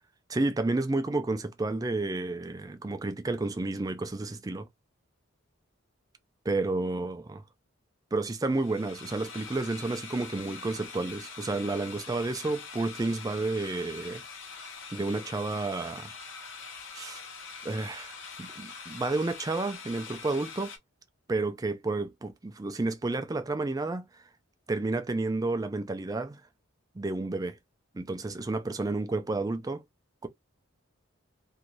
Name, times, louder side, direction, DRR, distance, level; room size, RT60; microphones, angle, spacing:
voice 1, 0.3-4.7 6.5-7.4 8.1-14.2 14.9-16.1 16.9-17.2 17.6-20.7 21.3-24.2 24.7-26.4 27.0-27.6 27.9-29.8 30.2-30.3, right 2 dB, 15° right, 0.3 m, -31 dB
sound 1, 8.4-20.8, left 5 dB, 65° left, 0.8 m, -44 dB
2.6 x 2.3 x 3.0 m
head